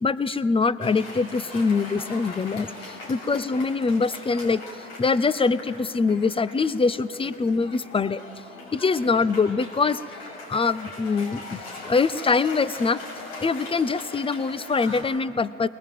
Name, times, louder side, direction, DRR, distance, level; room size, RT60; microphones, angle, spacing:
voice 1, 0.0-4.6 5.0-8.2 8.7-10.0 10.5-13.0 13.4-15.7, left 4 dB, 20° left, 16 dB, 0.8 m, -24 dB
Cheering / Applause, 0.8-15.0, left 2 dB, 90° left, 6.5 m, -40 dB
22.0 x 20.0 x 7.7 m, 2.5 s
supercardioid pair, 80°, 30 cm